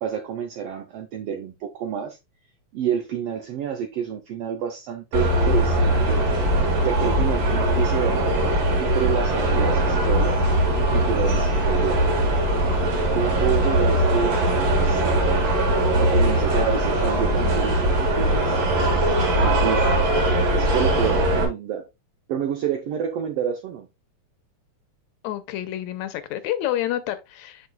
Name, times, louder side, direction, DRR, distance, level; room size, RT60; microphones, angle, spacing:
voice 1, 0.0-2.2 2.7-6.2 6.8-8.2 8.8-10.4 10.9-12.1 13.1-15.4 16.0-17.8 18.1-18.6 19.4-20.1 20.5-21.9 22.3-23.9, right 8 dB, 80° right, 1.4 m, -28 dB
sound 1, 5.1-21.4, right 1 dB, 60° right, 2.7 m, -21 dB
voice 2, 25.2-27.7, left 12 dB, 75° left, 1.8 m, -28 dB
7.6 x 5.9 x 2.2 m
omnidirectional pair, 3.5 m